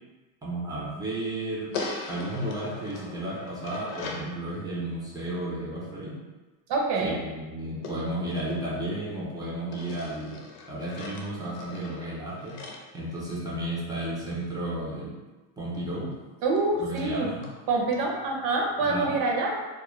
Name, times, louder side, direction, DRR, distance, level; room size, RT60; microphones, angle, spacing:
voice 1, 0.4-1.7 2.1-6.2 7.0-10.4 10.7-12.6 12.9-15.2 15.6-16.1 16.8-17.5 18.8-19.1, right 1 dB, 10° right, -7 dB, 0.4 m, -33 dB
sound 1, 1.7-4.3 7.8-9.2 9.7-13.8 15.7-15.8 16.1-16.2 16.6-16.7 17.0-17.1 17.4-17.6 17.9-18.0, left 3 dB, 75° left, 0.7 m, -40 dB
voice 2, 6.7-7.2 16.4-17.3 17.7-19.6, right 3 dB, 55° right, 0 dB, 0.6 m, -26 dB
2.3 x 2.1 x 3.0 m, 1.2 s
cardioid pair, 125°, 50 cm